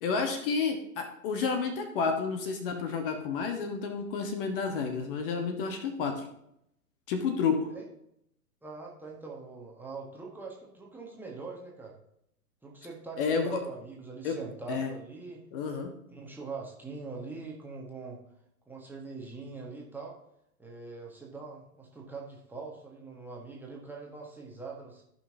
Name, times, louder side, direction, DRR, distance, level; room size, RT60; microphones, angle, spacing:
voice 1, 0.0-6.3 7.1-7.7 13.2-13.6 14.2-14.4 14.7-14.9 15.5-15.9, left 5 dB, 35° left, 5 dB, 1.4 m, -30 dB
voice 2, 8.6-12.0 12.6-15.4 16.1-18.2 18.7-20.2 20.6-25.0, right 4 dB, 5° right, -3 dB, 1.5 m, -43 dB
15.0 x 5.9 x 2.8 m, 0.74 s
figure-of-eight pair, 115°, 46 cm